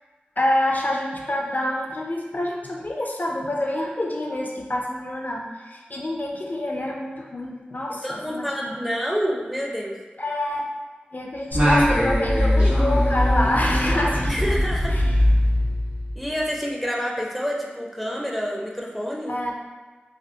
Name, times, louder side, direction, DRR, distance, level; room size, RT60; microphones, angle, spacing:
voice 1, 0.4-8.8 10.2-10.6 11.1-14.4 14.9-15.2 19.3-19.5, left 1 dB, 55° left, -1 dB, 0.4 m, -27 dB
voice 2, 8.0-10.0 14.3-15.0 16.2-19.4, equal, 5° right, -2 dB, 0.5 m, -28 dB
Singing, 11.5-16.3, left 1 dB, 45° right, 1.3 m, -20 dB
3.3 x 2.3 x 2.7 m, 1.3 s
wide cardioid pair, 50°, 4 cm